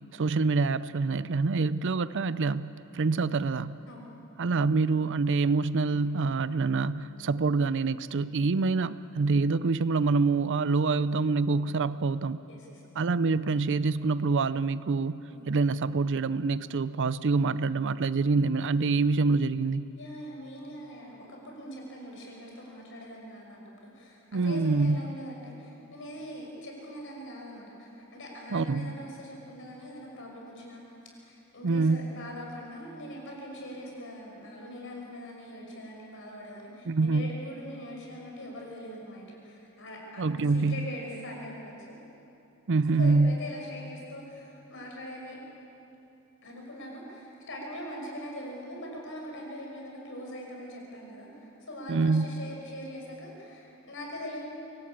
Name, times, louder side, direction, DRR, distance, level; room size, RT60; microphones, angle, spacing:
voice 1, 0.1-3.8 4.4-12.4 13.0-19.9 24.3-25.2 28.5-28.9 31.6-32.1 36.9-37.3 40.2-40.9 42.7-43.4 51.9-52.3, right 4 dB, 55° right, 15 dB, 0.5 m, -26 dB
voice 2, 12.5-12.8 15.3-15.5 20.0-42.0 43.0-45.4 46.4-54.4, equal, 60° left, -1 dB, 6.0 m, -42 dB
24.0 x 18.0 x 8.6 m, 2.9 s
head